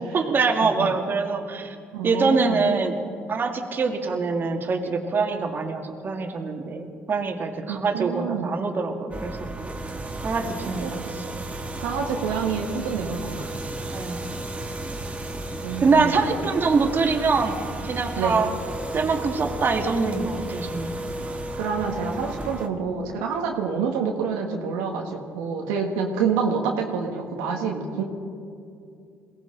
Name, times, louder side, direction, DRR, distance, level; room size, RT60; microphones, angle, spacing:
voice 1, 0.1-1.8 2.0-2.9 3.3-9.5 10.2-10.9 11.1-11.2 13.9-14.2 15.8-17.6 17.8-18.5 18.9-20.9, right 4 dB, 40° right, 3 dB, 2.0 m, -24 dB
voice 2, 1.9-2.6 7.7-8.5 10.8-10.9 11.8-13.5 15.6-16.1 18.2-18.4 21.6-28.0, right 6 dB, 90° right, 1 dB, 1.5 m, -27 dB
sound 1, 9.1-22.7, right 1 dB, 25° right, 1.5 m, -33 dB
22.0 x 17.0 x 3.9 m, 2.4 s
supercardioid pair, 70°, 5 cm